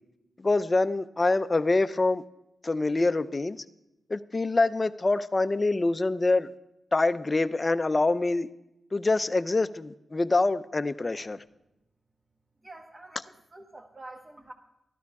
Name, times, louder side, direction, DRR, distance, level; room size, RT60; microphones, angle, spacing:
voice 1, 0.4-2.2 2.6-3.6 4.1-6.5 6.9-8.5 8.9-11.4, left 2 dB, 30° left, 12 dB, 0.5 m, -25 dB
voice 2, 12.6-14.5, right 2 dB, 25° right, 1 dB, 1.2 m, -47 dB
13.5 x 13.0 x 4.7 m, 0.90 s
wide cardioid pair, 105°, 0 cm